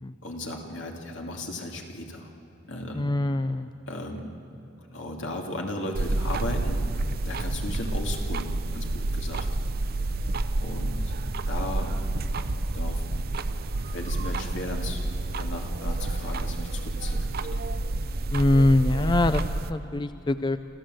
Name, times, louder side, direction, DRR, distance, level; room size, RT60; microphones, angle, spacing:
voice 1, 0.2-2.3 2.7-3.1 3.9-4.3 4.9-6.9 7.2-9.5 10.6-11.1 11.4-11.9 12.7-13.0 13.9-15.0 15.4-17.6, left 1 dB, 75° left, 1 dB, 2.6 m, -36 dB
voice 2, 3.0-3.7 18.3-20.6, left 1 dB, 25° left, 10 dB, 0.5 m, -23 dB
sound 1, 5.9-19.7, right 2 dB, 55° right, 0.7 m, -29 dB
27.0 x 15.0 x 7.8 m, 3.0 s
head